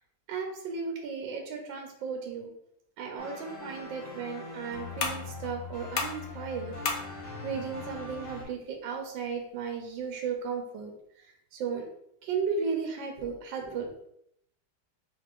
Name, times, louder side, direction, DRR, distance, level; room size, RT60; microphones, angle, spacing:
voice 1, 0.3-2.5 3.0-6.7 7.4-10.9 11.5-11.9 12.2-13.9, right 5 dB, 80° right, 2 dB, 1.4 m, -35 dB
sound 1, 3.2-8.4, left 4 dB, 65° left, 1.8 m, -42 dB
sound 2, 3.5-10.5, left 4 dB, 90° left, 0.6 m, -40 dB
5.2 x 3.5 x 2.5 m, 0.72 s
omnidirectional pair, 2.1 m